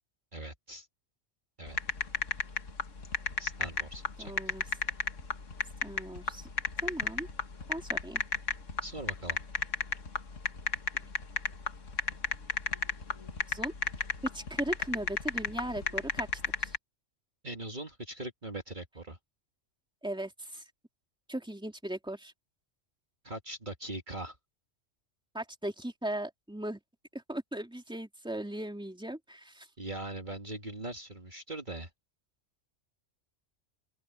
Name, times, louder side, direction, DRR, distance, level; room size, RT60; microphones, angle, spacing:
voice 1, 0.3-0.9 1.6-1.8 3.4-4.3 8.8-9.4 17.4-19.2 23.2-24.4 29.8-31.9, right 2 dB, 40° right, 2.3 m, -41 dB
sound 1, 1.7-16.8, left 4 dB, 80° left, 2.1 m, -33 dB
voice 2, 4.2-4.6 5.8-6.5 6.8-7.3 7.7-8.2 13.5-13.7 14.3-16.8 20.0-20.6 21.3-22.3 25.3-26.8 27.1-29.7, right 1 dB, 5° right, 2.9 m, -38 dB
open air
omnidirectional pair, 1.3 m